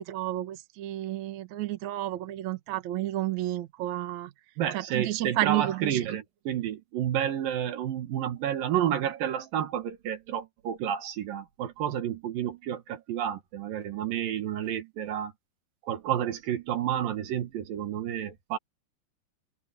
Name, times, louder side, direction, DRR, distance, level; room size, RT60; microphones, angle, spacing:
voice 1, 0.0-4.3 4.7-6.0, right 15 dB, 60° right, 2.5 m, -31 dB
voice 2, 4.6-15.3 15.8-18.6, right 10 dB, 75° right, 3.2 m, -30 dB
omnidirectional pair, 4.1 m